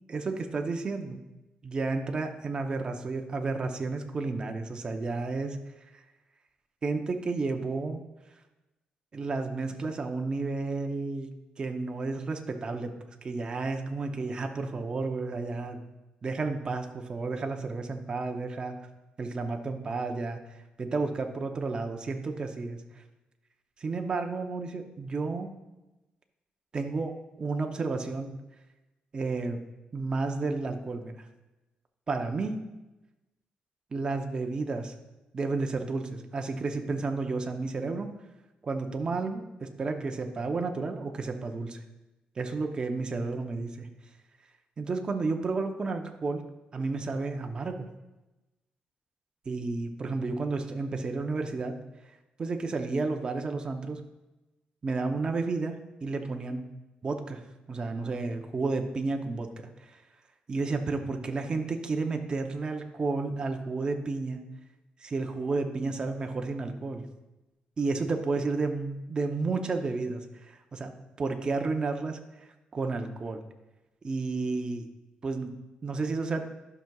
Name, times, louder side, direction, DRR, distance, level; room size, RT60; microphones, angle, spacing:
voice 1, 0.1-1.2 1.6-5.6 6.8-8.0 9.1-15.8 16.2-18.8 19.2-20.4 20.8-22.8 23.8-25.5 26.7-28.3 29.1-29.6 29.9-31.2 32.1-32.6 33.9-34.9 35.3-38.1 38.6-41.8 42.4-43.9 44.8-46.4 46.7-47.9 49.5-51.8 52.1-54.0 54.8-55.8 56.0-56.6 57.0-57.4 57.7-60.0 60.5-64.4 65.0-67.0 67.8-70.9 71.2-73.4 74.0-74.9 75.2-76.4, right 3 dB, 30° right, 4 dB, 0.6 m, -32 dB
12.0 x 5.9 x 2.3 m, 1.0 s
cardioid pair, 140°, 3 cm